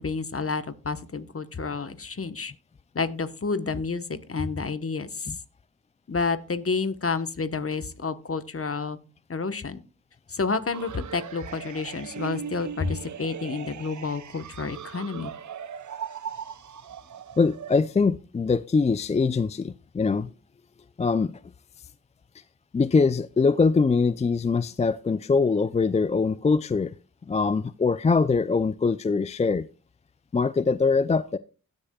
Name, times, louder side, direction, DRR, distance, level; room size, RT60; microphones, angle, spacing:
voice 1, 0.0-2.5 2.9-5.3 6.1-9.0 9.3-9.8 10.3-15.3, left 4 dB, 40° left, 1.0 m, -30 dB
sound 1, 10.7-17.8, right 8 dB, 60° right, 0.6 m, -39 dB
voice 2, 17.4-20.3 21.0-21.3 22.7-26.9 27.3-29.7 30.3-31.4, left 4 dB, 20° left, 0.3 m, -23 dB
17.0 x 6.6 x 2.3 m
cardioid pair, 40°, 34 cm